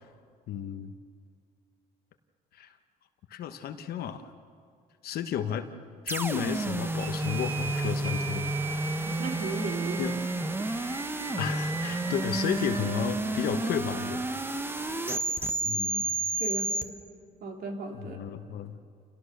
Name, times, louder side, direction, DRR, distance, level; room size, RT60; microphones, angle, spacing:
voice 1, 0.5-0.9 2.5-2.7 3.3-4.3 5.0-5.7 6.0-8.5 10.0-10.1 11.4-14.3 15.6-16.1 17.9-18.8, left 9 dB, 65° left, 8 dB, 1.2 m, -33 dB
sound 1, 6.1-16.8, right 2 dB, 15° right, 1.2 m, -31 dB
sound 2, 7.0-14.9, right 6 dB, 30° right, 0.9 m, -41 dB
voice 2, 9.0-10.1 15.7-15.9 16.4-16.8 17.4-18.2, right 3 dB, 60° right, 2 dB, 3.3 m, -36 dB
28.5 x 18.0 x 6.8 m, 2.2 s
cardioid pair, 110°, 17 cm